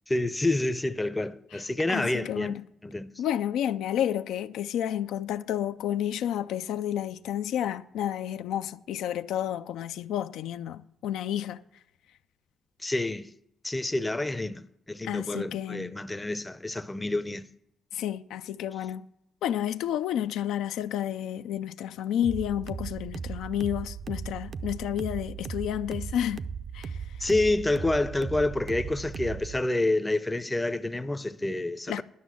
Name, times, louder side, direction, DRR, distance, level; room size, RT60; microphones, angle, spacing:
voice 1, 0.1-2.6 2.8-3.1 12.8-13.3 13.6-17.5 27.2-32.0, left 2 dB, 15° left, 0.5 m, -28 dB
voice 2, 1.5-2.6 3.2-11.6 15.0-16.0 17.9-19.1 19.4-26.4 26.7-27.3 31.9-32.0, left 10 dB, 85° left, 0.4 m, -31 dB
sound 1, 22.2-29.6, right 6 dB, 50° right, 0.5 m, -37 dB
11.0 x 6.2 x 7.5 m
cardioid pair, 90°, 0 cm